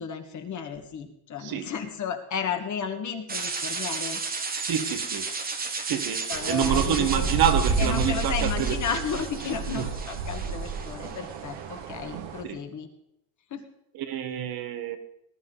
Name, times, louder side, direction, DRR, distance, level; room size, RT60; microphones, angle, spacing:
voice 1, 0.0-4.2 6.3-7.3 7.8-12.9 13.5-13.6, left 6 dB, 40° left, 5 dB, 1.7 m, -33 dB
voice 2, 1.4-1.7 4.6-5.3 5.8-8.8 9.7-9.9 12.4-12.6 13.9-15.0, right 9 dB, 50° right, 7 dB, 1.5 m, -27 dB
sound 1, 3.3-11.3, right 4 dB, 20° right, 1.2 m, -34 dB
sound 2, 6.3-12.4, right 4 dB, 70° right, 2.0 m, -30 dB
19.5 x 11.5 x 3.9 m, 0.79 s
cardioid pair, 160°, 46 cm